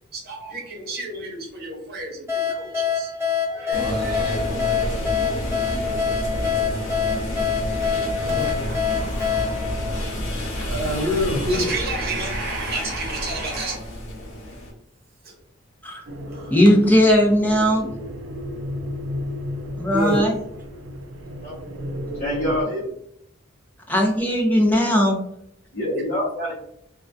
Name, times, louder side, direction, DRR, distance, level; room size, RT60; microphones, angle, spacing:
voice 1, 0.1-3.1 3.5-4.6 8.1-9.6 9.9-13.8 15.2-15.3 16.3-16.5 19.9-20.3, right 1 dB, 55° right, 0.9 m, -29 dB
sound 1, 2.3-10.7, left 6 dB, 15° right, 0.9 m, -26 dB
sound 2, 3.7-14.7, left 1 dB, 75° left, 0.9 m, -29 dB
sound 3, 16.1-22.6, left 1 dB, 90° right, 0.4 m, -33 dB
voice 2, 16.5-18.0 19.8-20.4 23.9-25.2, equal, 10° left, 0.5 m, -18 dB
voice 3, 22.2-22.9 25.8-26.6, left 1 dB, 50° left, 0.7 m, -25 dB
2.2 x 2.2 x 2.5 m
head